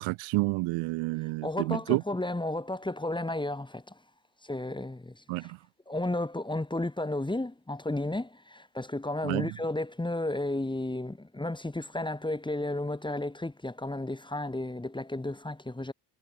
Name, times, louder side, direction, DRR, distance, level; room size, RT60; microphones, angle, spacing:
voice 1, 0.0-2.0 5.3-5.6 9.2-9.5, right 24 dB, 75° right, 1.0 m, -29 dB
voice 2, 1.4-4.0 4.4-5.5 5.9-15.9, left 1 dB, 10° left, 2.0 m, -33 dB
supercardioid pair, 65°, 47 cm